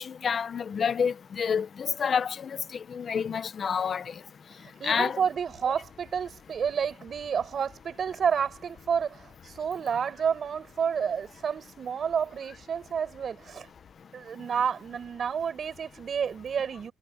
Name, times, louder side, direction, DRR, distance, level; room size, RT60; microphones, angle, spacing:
voice 1, 0.0-4.1 4.8-5.2, left 6 dB, 50° left, 1.2 m, -28 dB
voice 2, 4.8-13.7 14.1-16.9, right 7 dB, 50° right, 5.0 m, -30 dB
cardioid pair, 90°, 0 cm